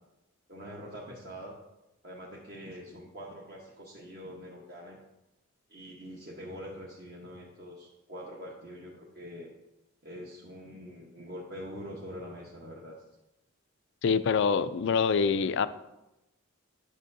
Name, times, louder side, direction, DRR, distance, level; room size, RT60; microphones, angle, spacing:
voice 1, 0.5-1.5 2.0-5.0 5.7-9.5 10.0-13.0, equal, 45° right, -4 dB, 1.0 m, -44 dB
voice 2, 14.0-15.7, left 6 dB, 55° left, 13 dB, 0.3 m, -25 dB
10.0 x 6.3 x 2.6 m, 0.96 s
head